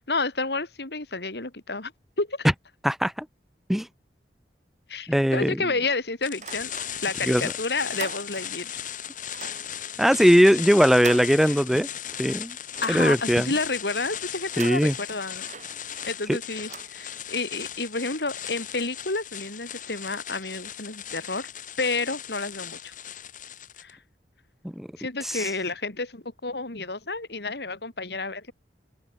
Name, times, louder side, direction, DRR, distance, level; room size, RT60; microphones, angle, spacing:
voice 1, 0.0-1.9 2.2-2.5 4.9-6.7 7.0-8.7 11.7-11.8 12.8-15.4 16.0-21.5 21.8-22.9 23.8-24.0 25.0-28.5, left 3 dB, 65° left, 2.7 m, -30 dB
voice 2, 2.8-3.2 3.7-3.9 5.1-5.6 7.3-7.4 10.0-11.9 12.2-12.5 12.9-13.5 14.6-14.9 16.3-16.4 24.8-24.9 25.2-25.4, equal, ahead, 1.4 m, -20 dB
sound 1, 6.2-23.9, left 9 dB, 50° left, 4.8 m, -37 dB
sound 2, 6.3-7.3 7.6-8.7 9.2-12.1 12.4-13.6 14.4-17.5, right 5 dB, 45° right, 7.5 m, -43 dB
open air
head